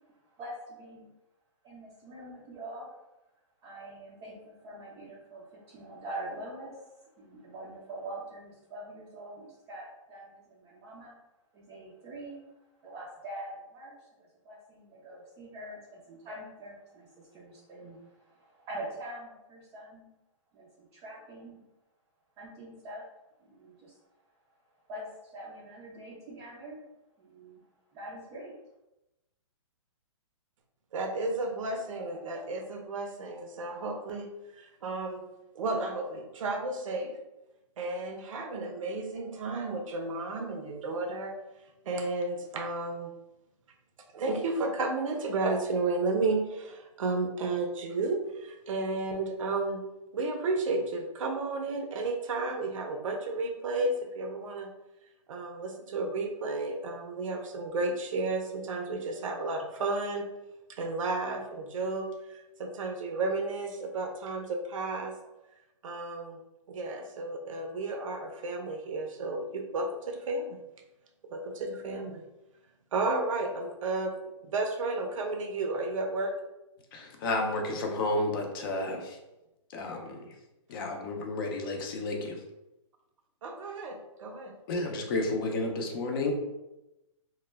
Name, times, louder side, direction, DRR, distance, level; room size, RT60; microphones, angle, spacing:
voice 1, 0.4-1.1 1.6-2.9 3.6-6.9 7.2-11.1 11.5-12.4 12.8-13.9 14.2-20.1 20.5-21.6 22.4-23.0 23.4-24.0 24.9-26.8 27.2-27.6 27.9-28.6, right 1 dB, 15° right, -6 dB, 0.3 m, -44 dB
voice 2, 30.9-34.3 34.6-35.3 35.6-37.1 37.8-41.4 41.9-43.1 44.1-49.8 50.1-54.7 55.3-60.3 60.7-65.1 65.8-66.4 66.7-70.6 71.3-72.2 72.9-74.1 74.4-76.3 83.4-84.5, right 3 dB, 80° right, 3 dB, 0.5 m, -32 dB
voice 3, 76.9-79.2 79.7-80.4 80.7-82.4 84.7-86.3, left 2 dB, 45° left, 2 dB, 0.5 m, -31 dB
2.1 x 2.1 x 3.2 m, 0.95 s
hypercardioid pair, 150°, 17 cm